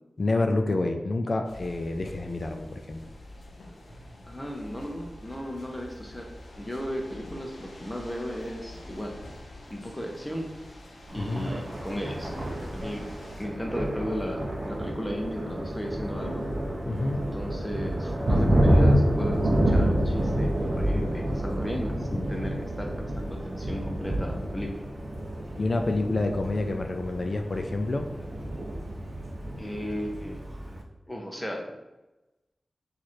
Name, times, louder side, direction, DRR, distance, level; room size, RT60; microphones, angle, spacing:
voice 1, 0.2-3.1 11.2-11.5 16.9-17.2 25.6-28.1, left 2 dB, 55° left, 4 dB, 0.3 m, -28 dB
sound 1, 1.4-13.5, left 1 dB, 90° left, 0.6 m, -46 dB
voice 2, 4.3-6.3 6.6-9.2 9.7-10.5 11.1-12.3 12.7-13.1 13.4-16.5 17.1-24.8 29.6-30.4 31.1-31.6, equal, 10° left, 1 dB, 0.7 m, -35 dB
Thunder, 11.1-30.8, right 1 dB, 45° right, 0.6 m, -28 dB
3.1 x 2.5 x 4.2 m, 1.0 s
wide cardioid pair, 75°, 0 cm